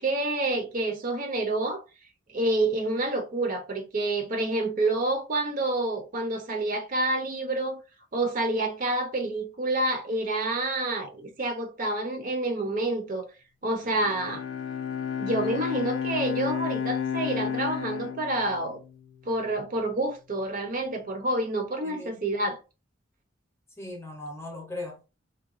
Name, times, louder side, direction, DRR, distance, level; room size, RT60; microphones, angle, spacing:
voice 1, 0.0-1.8 2.3-7.8 8.1-13.3 13.6-14.4 15.2-18.8 19.3-22.6, right 2 dB, 45° right, 0.5 m, -28 dB
Bowed string instrument, 13.8-19.2, left 8 dB, 80° left, 0.3 m, -32 dB
voice 2, 21.8-22.2 23.8-25.1, left 2 dB, 15° left, 0.7 m, -38 dB
2.7 x 2.2 x 2.4 m
head